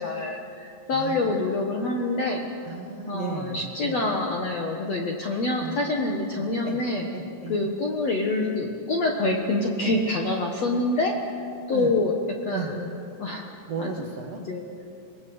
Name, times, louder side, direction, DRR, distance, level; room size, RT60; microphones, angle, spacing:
voice 1, 0.0-2.4 3.1-7.1 7.5-11.1 11.7-12.2 12.4-13.5 13.8-14.0 14.4-14.6, left 2 dB, 65° left, 1 dB, 1.7 m, -26 dB
voice 2, 0.9-1.6 2.6-4.0 5.6-6.8 7.1-7.6 8.5-8.7 9.8-10.0 11.7-11.9 12.5-12.7 13.7-14.4, right 5 dB, 80° right, 3 dB, 1.4 m, -35 dB
27.5 x 21.0 x 8.0 m, 2.6 s
omnidirectional pair, 5.2 m